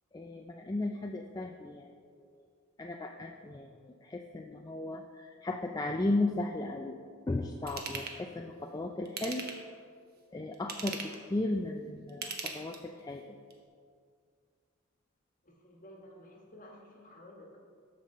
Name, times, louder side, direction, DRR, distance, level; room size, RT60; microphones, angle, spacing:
voice 1, 0.1-2.5 2.8-7.0 7.3-9.4 10.3-13.4, left 2 dB, 20° left, 3 dB, 0.3 m, -35 dB
Ratchet pawl / Tools, 7.7-8.2 9.0-9.7 10.5-11.2 12.1-13.0 13.5-13.6, right 5 dB, 45° right, 1.0 m, -39 dB
voice 2, 15.4-17.6, left 1 dB, 40° left, -1 dB, 1.4 m, -53 dB
13.0 x 5.4 x 4.2 m, 2.1 s
head